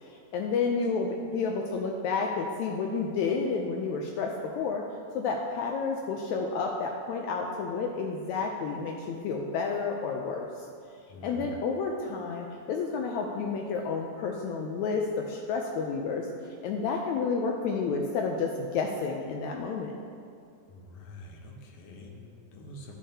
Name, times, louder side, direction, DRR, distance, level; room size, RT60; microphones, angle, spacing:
voice 1, 0.0-4.8 5.1-10.7 11.2-16.3 16.6-19.9, left 4 dB, 80° left, 1 dB, 1.7 m, -30 dB
voice 2, 11.1-11.5 20.7-23.0, left 1 dB, 60° left, -1 dB, 1.5 m, -46 dB
12.0 x 6.6 x 2.8 m, 2.4 s
omnidirectional pair, 3.6 m